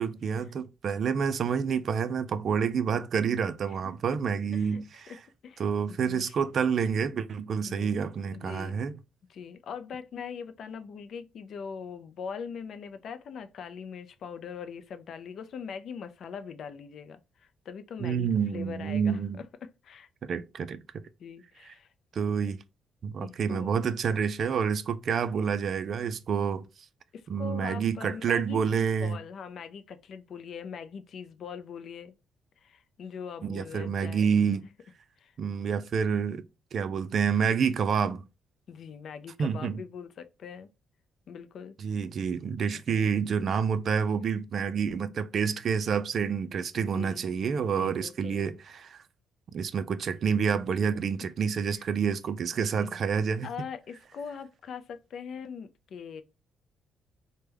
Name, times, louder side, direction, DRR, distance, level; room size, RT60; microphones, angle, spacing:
voice 1, 0.0-5.1 5.6-8.9 18.0-19.4 20.2-20.8 22.1-22.6 23.0-26.6 27.3-29.2 33.4-34.7 35.4-36.4 36.7-38.2 39.4-39.8 41.8-49.0 49.5-53.5, right 6 dB, 55° right, 0.3 m, -28 dB
voice 2, 5.1-6.4 7.6-7.9 8.3-8.8 9.3-20.1 21.2-21.9 23.2-23.7 27.1-32.1 32.6-34.3 35.2-35.3 38.7-40.7 41.3-41.7 42.7-43.1 46.7-47.3 47.7-48.4 50.7-51.0 51.7-51.9 52.6-53.0 53.4-56.2, left 6 dB, 65° left, 0.4 m, -42 dB
3.3 x 2.1 x 3.3 m
cardioid pair, 90°, 0 cm